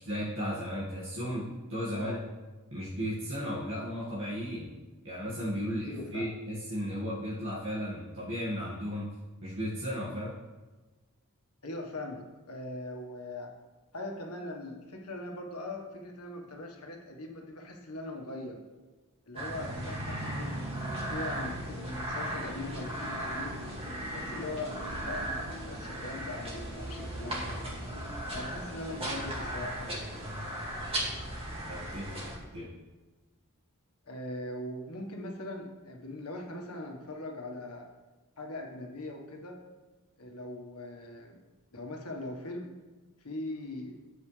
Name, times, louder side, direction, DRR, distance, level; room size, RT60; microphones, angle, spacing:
voice 1, 0.0-1.4 1.7-2.2 2.7-4.7 5.0-9.1 9.4-10.4 31.7-32.3 32.5-32.7, equal, 60° right, -8 dB, 2.1 m, -35 dB
voice 2, 5.8-6.4 11.6-13.5 13.9-18.6 19.3-23.6 24.1-24.8 25.0-27.6 28.3-30.4 34.1-37.9 38.4-39.6 40.2-41.4 41.7-42.7 43.2-44.0, left 2 dB, 75° left, 1 dB, 1.6 m, -41 dB
sound 1, 19.3-32.4, right 1 dB, 25° right, 2.3 m, -36 dB
11.0 x 8.1 x 3.4 m, 1.2 s
head